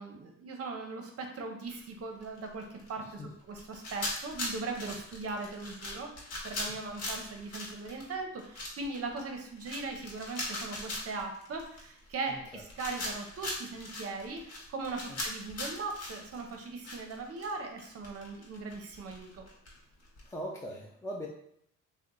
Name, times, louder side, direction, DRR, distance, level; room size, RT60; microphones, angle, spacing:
voice 1, 0.0-3.2 3.5-19.4, right 3 dB, 50° right, 3 dB, 0.7 m, -39 dB
sound 1, 1.7-1.8 2.2-2.9 3.6-17.5 17.8-20.3, left 1 dB, 55° left, 1.0 m, -40 dB
voice 2, 3.0-3.3 6.7-6.9 12.3-12.6 15.1-15.2 20.3-21.3, equal, 10° left, -2 dB, 0.5 m, -41 dB
2.8 x 2.1 x 3.7 m, 0.72 s
cardioid pair, 90°, 30 cm